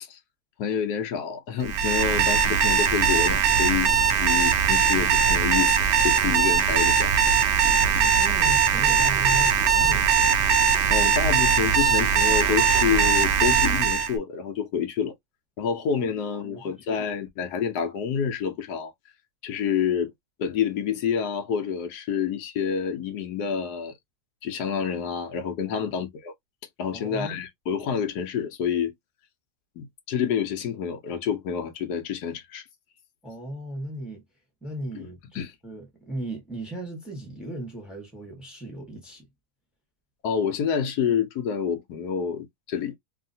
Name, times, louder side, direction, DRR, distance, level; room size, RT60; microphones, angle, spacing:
voice 1, 0.6-7.1 10.9-15.1 15.6-18.9 19.4-20.1 20.4-23.9 24.4-26.3 26.8-28.9 29.8-32.6 34.9-35.1 35.3-35.5 40.2-43.0, left 7 dB, 80° left, 1.2 m, -28 dB
Alarm, 1.6-14.1, right 6 dB, 75° right, 0.6 m, -21 dB
voice 2, 7.6-10.2 16.4-16.9 25.8-25.9 26.9-27.4 33.2-34.2 34.6-39.3, right 1 dB, ahead, 1.1 m, -37 dB
3.0 x 2.7 x 2.6 m
omnidirectional pair, 1.7 m